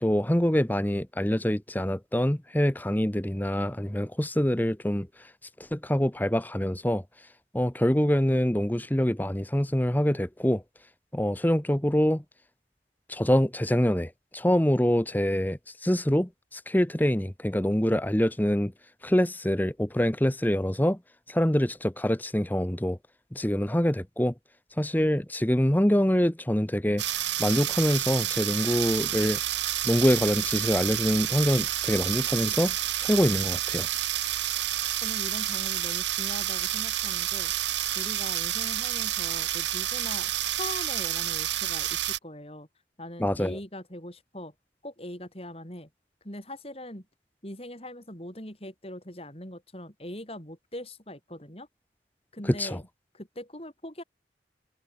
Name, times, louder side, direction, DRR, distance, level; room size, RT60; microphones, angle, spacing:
voice 1, 0.0-5.3 5.7-7.0 7.5-10.6 11.1-12.2 13.1-18.7 19.0-21.0 21.3-23.0 23.3-24.3 24.8-27.0 27.4-29.4 29.8-33.9 43.2-43.6 52.4-52.8, equal, 10° left, 1.0 m, -25 dB
sound 1, 27.0-42.2, right 12 dB, 80° right, 3.9 m, -29 dB
voice 2, 35.0-37.5 37.9-42.7 43.0-44.5 44.8-45.9 46.2-47.1 47.4-51.7 52.3-52.9 53.1-54.0, left 1 dB, 30° left, 7.2 m, -41 dB
head